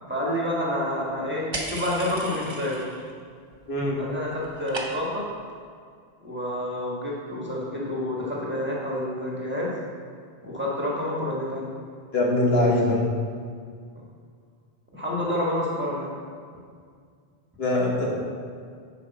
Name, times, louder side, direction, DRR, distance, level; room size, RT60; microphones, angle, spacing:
voice 1, 0.0-2.8 4.0-5.3 6.2-9.7 10.4-11.7 12.5-12.6 13.9-14.0 14.9-16.2, left 1 dB, 10° right, -5 dB, 1.3 m, -28 dB
sound 1, 1.5-3.1 3.4-4.0 4.2-5.3, right 2 dB, 25° right, 0.8 m, -36 dB
voice 2, 3.7-4.0 12.1-13.0 17.6-18.2, left 1 dB, 60° left, -3 dB, 1.5 m, -22 dB
9.9 x 5.1 x 4.0 m, 2.1 s
omnidirectional pair, 1.2 m